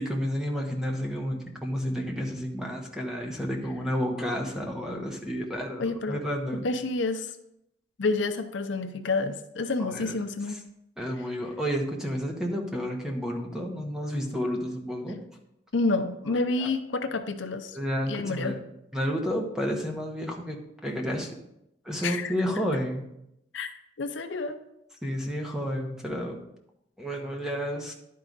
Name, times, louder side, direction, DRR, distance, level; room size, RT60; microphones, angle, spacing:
voice 1, 0.0-6.7 9.8-10.1 10.5-10.6 11.0-15.2 16.6-16.7 17.7-18.6 18.9-20.6 20.8-21.4 21.8-23.0 25.0-26.4 27.0-27.9, equal, 5° right, 1 dB, 1.1 m, -31 dB
voice 2, 5.8-6.2 6.6-7.4 8.0-10.6 15.7-17.8 18.1-18.6 22.0-22.3 23.5-23.7 24.0-24.6, left 3 dB, 80° left, 7 dB, 0.6 m, -29 dB
11.0 x 4.7 x 3.9 m, 0.81 s
head